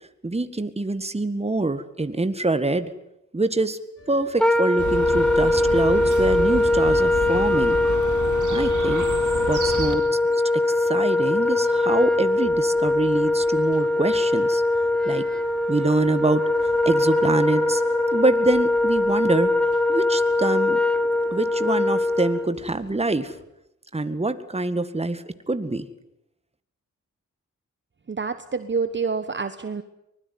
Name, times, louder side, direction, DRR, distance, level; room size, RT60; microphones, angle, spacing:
voice 1, 0.2-2.9 3.3-3.8 4.1-7.8 8.5-9.1 9.5-10.0 10.3-14.6 15.1-15.2 15.7-16.4 16.9-17.8 18.1-19.5 19.9-20.8 21.3-23.3 23.9-25.9, right 2 dB, 20° right, 11 dB, 1.8 m, -25 dB
sound 1, 4.0-23.4, left 3 dB, 50° left, 5.4 m, -47 dB
Wind instrument woodwind instrument, 4.4-22.5, left 2 dB, 5° left, 2.0 m, -21 dB
Chirp tweet, 4.8-10.0, right 5 dB, 80° right, 4.0 m, -30 dB
voice 2, 28.1-29.8, right 5 dB, 40° right, 10 dB, 1.2 m, -27 dB
24.5 x 20.5 x 9.6 m, 0.85 s
wide cardioid pair, 85°, 30 cm